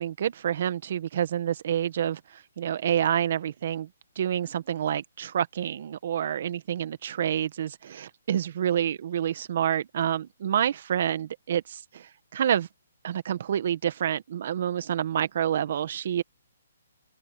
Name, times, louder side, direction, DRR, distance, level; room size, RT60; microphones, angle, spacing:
voice 1, 0.0-3.9 4.1-12.7 13.0-16.2, right 10 dB, 50° right, 1.6 m, -28 dB
open air
hypercardioid pair, 160°, 0 cm